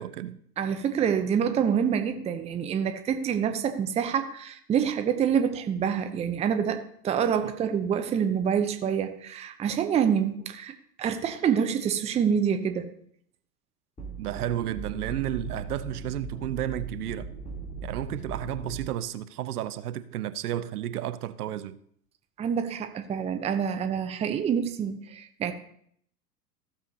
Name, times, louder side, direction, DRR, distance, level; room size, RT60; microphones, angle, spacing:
voice 1, 0.0-0.4 7.4-7.5 14.2-17.3 17.8-21.8, right 12 dB, 65° right, 0.7 m, -32 dB
voice 2, 0.6-10.7 11.0-12.9 22.4-25.5, right 7 dB, 15° right, 0.6 m, -27 dB
sound 1, 14.0-18.8, right 3 dB, 15° left, 3.1 m, -38 dB
15.5 x 7.0 x 2.8 m
hypercardioid pair, 100°, 48 cm